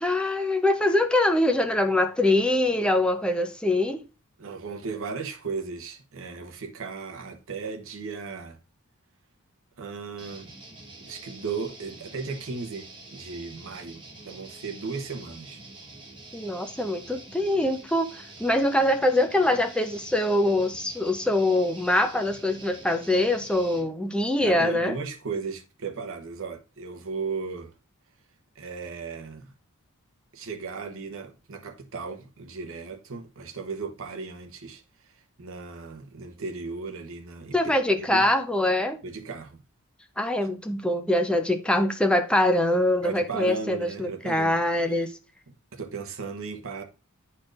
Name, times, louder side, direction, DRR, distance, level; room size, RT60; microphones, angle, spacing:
voice 1, 0.0-4.0 16.3-25.0 37.5-39.0 40.2-45.1, left 1 dB, 5° left, 0.6 m, -24 dB
voice 2, 4.4-8.6 9.8-10.5 11.0-15.6 24.4-27.7 28.5-29.5 30.3-35.1 35.4-38.3 39.0-39.6 43.0-45.1 45.7-46.8, right 4 dB, 65° right, 0.9 m, -36 dB
sound 1, 10.2-23.9, right 2 dB, 20° right, 1.3 m, -46 dB
10.0 x 4.4 x 2.5 m
head